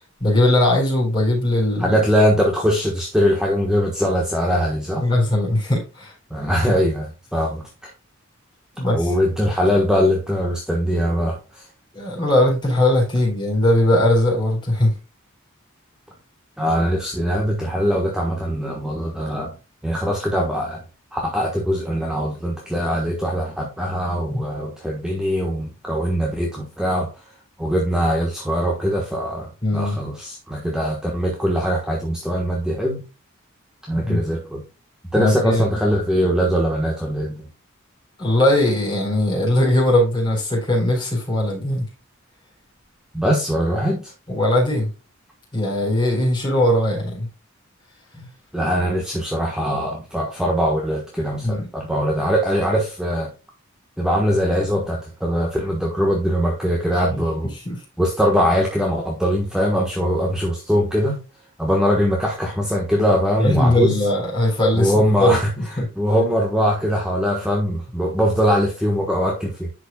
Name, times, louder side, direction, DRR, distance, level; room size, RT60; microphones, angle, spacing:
voice 1, 0.2-2.0 5.0-6.1 8.8-9.1 11.9-14.9 24.3-24.4 29.6-30.0 33.9-34.2 35.1-35.6 38.2-41.9 44.3-44.9 45.5-47.3 51.4-51.7 57.1-57.2 57.7-57.8 63.4-64.9 65.2-65.4 65.8-65.9, left 1 dB, 20° left, 4.3 m, -19 dB
voice 2, 1.8-5.0 6.3-7.9 8.9-11.7 16.6-19.5 19.8-20.8 21.1-27.1 27.6-33.0 33.9-34.6 35.1-37.5 43.1-44.1 48.1-48.3 48.5-53.3 54.0-57.5 58.0-61.2 61.6-63.9 64.7-69.7, equal, 5° right, 1.2 m, -21 dB
11.0 x 5.1 x 2.3 m
head